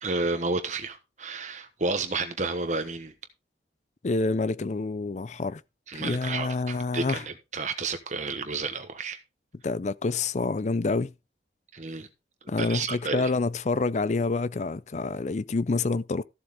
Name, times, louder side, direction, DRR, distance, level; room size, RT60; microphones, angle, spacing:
voice 1, 0.0-3.1 5.9-9.2 11.7-12.1 12.6-13.3, right 3 dB, 40° right, 1.1 m, -31 dB
voice 2, 4.0-5.6 5.9-7.2 9.6-11.1 12.5-16.2, left 3 dB, 40° left, 0.4 m, -27 dB
14.0 x 7.5 x 3.6 m
head